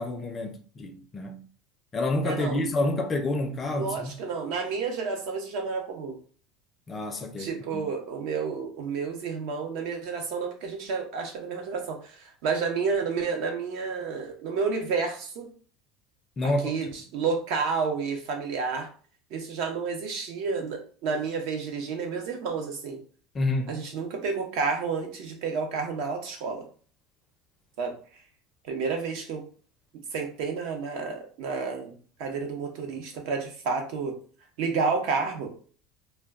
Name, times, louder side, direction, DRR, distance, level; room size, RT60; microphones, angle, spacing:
voice 1, 0.0-1.4 1.9-4.1 6.9-7.8 16.4-16.8 23.3-23.7, left 2 dB, 25° left, 0.4 m, -28 dB
voice 2, 2.2-2.6 3.7-6.2 7.4-15.5 16.6-18.9 19.3-23.0 23.7-26.6 27.8-27.9 28.7-29.4 30.1-34.2 34.6-35.5, right 5 dB, 65° right, 0.8 m, -30 dB
2.2 x 2.2 x 3.5 m
supercardioid pair, 140°, 0 cm